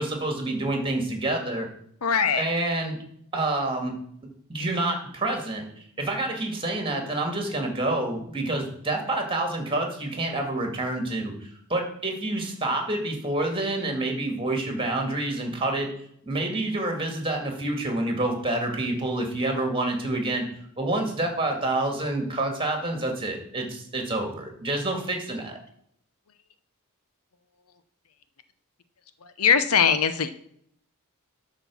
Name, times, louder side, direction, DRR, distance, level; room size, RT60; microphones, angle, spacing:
voice 1, 0.0-1.7 2.4-3.0 3.3-3.9 4.5-5.6 6.0-15.9 16.3-20.5 20.8-25.6, right 2 dB, 25° right, 3 dB, 2.2 m, -28 dB
voice 2, 2.0-2.4 29.2-30.3, left 7 dB, 75° left, 11 dB, 0.8 m, -21 dB
11.5 x 4.4 x 7.1 m, 0.68 s
head